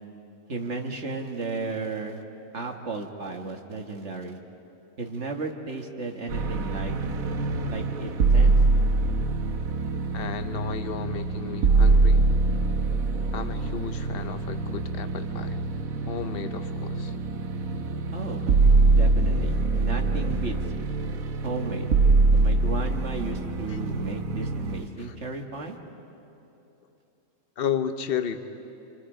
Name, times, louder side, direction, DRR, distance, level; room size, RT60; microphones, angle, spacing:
voice 1, 0.5-2.2 2.5-4.4 5.0-6.9 7.7-8.6 18.1-18.5 18.9-20.6 21.4-21.9 22.3-25.8, right 3 dB, 55° right, 3 dB, 1.9 m, -34 dB
sound 1, 6.3-24.8, right 3 dB, 85° right, 1.5 m, -24 dB
voice 2, 10.1-12.3 13.3-15.6 16.0-17.1 23.7-23.8 25.0-25.1 27.6-28.4, left 8 dB, 45° left, 9 dB, 1.0 m, -33 dB
28.0 x 27.0 x 5.0 m, 2.9 s
omnidirectional pair, 1.4 m